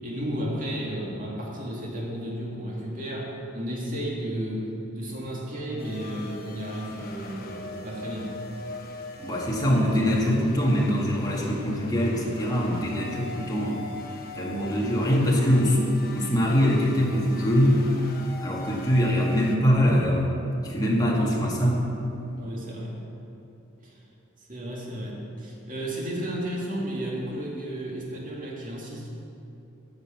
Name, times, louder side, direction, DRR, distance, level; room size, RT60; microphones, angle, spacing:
voice 1, 0.0-4.7 4.9-8.4 22.4-22.9 23.8-24.0 24.5-29.1, equal, 40° right, -3 dB, 2.2 m, -33 dB
sound 1, 5.8-19.6, left 2 dB, 45° left, 1.1 m, -41 dB
voice 2, 9.2-13.8 14.4-17.8 18.4-20.2 20.6-21.8, equal, 20° left, -4 dB, 1.8 m, -23 dB
14.0 x 6.6 x 5.9 m, 2.8 s
head